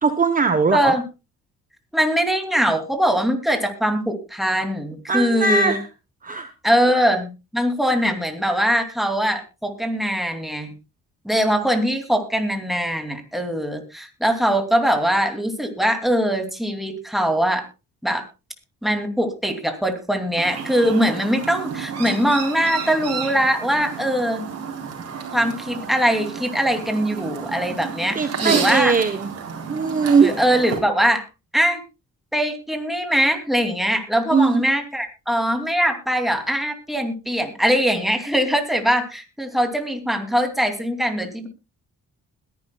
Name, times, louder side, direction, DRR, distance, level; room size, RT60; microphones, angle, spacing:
voice 1, 0.0-1.0 5.1-5.8 6.2-6.5 28.1-29.3 29.7-30.3 34.3-34.6, right 4 dB, 30° right, 10 dB, 1.0 m, -19 dB
voice 2, 0.7-1.0 1.9-5.8 6.6-10.7 11.2-17.6 18.0-18.3 18.8-24.4 25.3-28.9 30.2-31.3 31.5-31.8 32.3-41.5, equal, ahead, 5 dB, 2.7 m, -22 dB
Chirp tweet, 20.4-30.8, right 6 dB, 55° right, 4.0 m, -31 dB
21.0 x 10.5 x 2.3 m, 0.28 s
cardioid pair, 90°, 30 cm